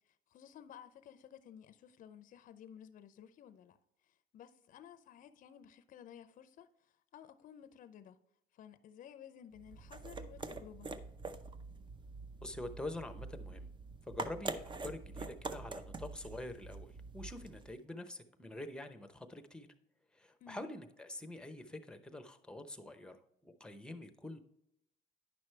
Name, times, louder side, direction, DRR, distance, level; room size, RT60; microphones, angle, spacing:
voice 1, 0.0-3.8 4.0-8.2 8.5-10.9 20.4-20.6, left 9 dB, 50° left, 0.6 m, -55 dB
sound 1, 9.5-17.8, right 3 dB, 30° right, 0.6 m, -45 dB
voice 2, 12.4-13.7 14.1-19.7 20.1-23.2 23.4-24.4, left 1 dB, 5° left, 0.8 m, -46 dB
9.8 x 6.1 x 3.3 m
cardioid pair, 110°, 17 cm